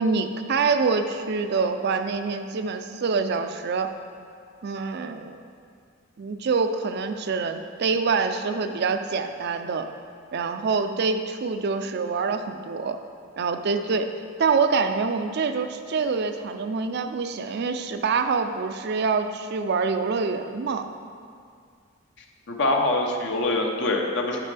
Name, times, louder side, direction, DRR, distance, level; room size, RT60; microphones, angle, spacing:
voice 1, 0.0-3.9 4.6-5.4 6.2-9.9 10.3-13.0 13.4-14.1 14.4-20.9, right 4 dB, 55° right, 8 dB, 0.4 m, -25 dB
voice 2, 22.5-24.4, left 2 dB, 60° left, 1 dB, 0.8 m, -24 dB
9.7 x 6.7 x 3.4 m, 2.2 s
head